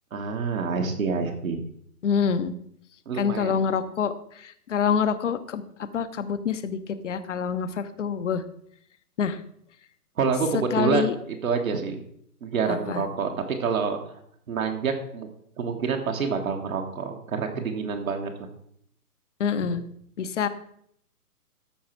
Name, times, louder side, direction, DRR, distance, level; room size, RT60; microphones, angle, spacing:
voice 1, 0.1-1.6 3.1-3.5 10.2-12.0 12.4-13.3 13.6-14.0 14.5-15.3 15.6-18.3 19.6-19.7, right 5 dB, 60° right, 3 dB, 1.5 m, -27 dB
voice 2, 2.0-2.5 3.2-5.6 5.9-6.8 7.0-8.4 9.2-9.4 10.7-11.1 12.7-13.0 19.4-19.8 20.2-20.5, left 7 dB, 50° left, 12 dB, 0.9 m, -26 dB
13.5 x 4.8 x 4.5 m, 0.69 s
figure-of-eight pair, 135°, 47 cm